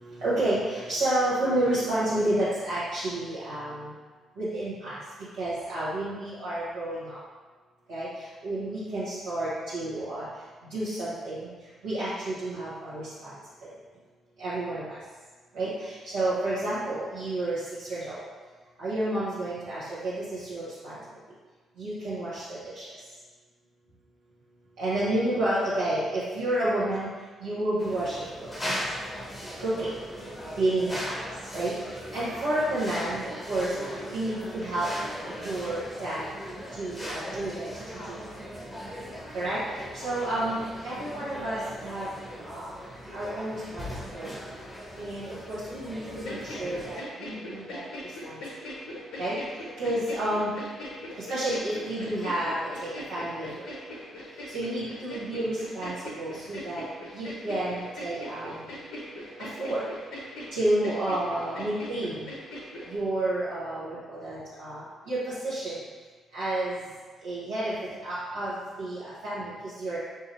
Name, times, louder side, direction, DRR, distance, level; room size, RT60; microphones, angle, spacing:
voice 1, 0.0-3.9 4.4-5.0 5.4-7.2 7.9-8.1 8.4-10.3 10.6-11.5 11.8-13.3 14.4-15.0 15.5-18.2 18.8-21.0 21.8-22.8 24.8-27.1 27.4-28.5 29.6-29.9 30.5-31.2 31.5-31.7 32.1-33.7 34.1-34.9 35.4-36.3 36.8-37.7 38.1-38.2 39.3-42.1 42.5-42.7 43.1-44.3 45.0-47.8 48.2-48.4 49.2-49.4 49.8-50.5 51.2-53.6 54.5-56.8 57.1-58.7 59.4-59.8 60.5-62.3 62.9-65.8 66.3-66.8 67.2-70.0, right 1 dB, 70° right, -13 dB, 1.0 m, -30 dB
sound 1, 27.8-47.0, equal, 20° left, 0.8 m, -38 dB
sound 2, 46.2-63.0, left 1 dB, 55° left, 0.7 m, -41 dB
5.5 x 2.6 x 2.6 m, 1.4 s
figure-of-eight pair, 40°, 0 cm